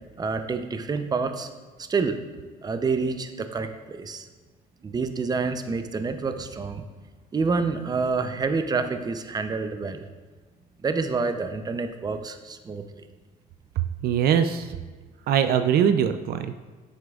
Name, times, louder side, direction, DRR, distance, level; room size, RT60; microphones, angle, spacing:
voice 1, 0.2-1.5 1.9-2.2 2.6-4.3 4.8-6.8 7.3-10.1 10.8-12.8, right 4 dB, 25° right, 8 dB, 0.6 m, -28 dB
voice 2, 14.0-14.7 15.3-16.5, right 8 dB, 65° right, 9 dB, 0.4 m, -22 dB
10.0 x 7.9 x 2.4 m, 1.4 s
cardioid pair, 110°, 17 cm